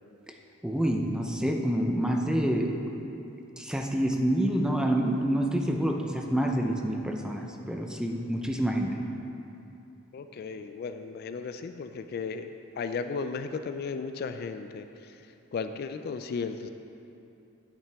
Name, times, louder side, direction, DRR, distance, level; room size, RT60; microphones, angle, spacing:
voice 1, 0.6-2.7 3.6-9.0, right 1 dB, 5° right, 2 dB, 0.5 m, -27 dB
voice 2, 10.1-12.5 12.8-14.9 15.5-16.7, left 5 dB, 50° left, 8 dB, 0.3 m, -35 dB
9.3 x 8.7 x 3.5 m, 2.8 s
head